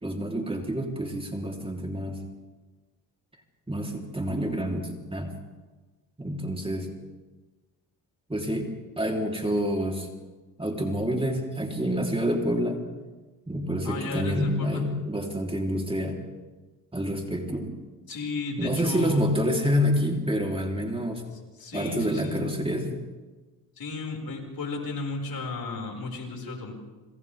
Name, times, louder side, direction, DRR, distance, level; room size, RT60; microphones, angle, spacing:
voice 1, 0.0-2.2 3.7-5.3 6.2-6.9 8.3-8.7 9.0-10.1 10.6-12.8 13.5-16.2 16.9-17.8 18.6-21.2 21.7-23.0, equal, 10° right, 1 dB, 3.9 m, -28 dB
voice 2, 13.8-14.8 18.1-19.2 21.3-22.4 23.8-26.7, left 3 dB, 55° left, 1 dB, 6.1 m, -34 dB
27.0 x 26.0 x 3.7 m, 1.3 s
hypercardioid pair, 55°, 44 cm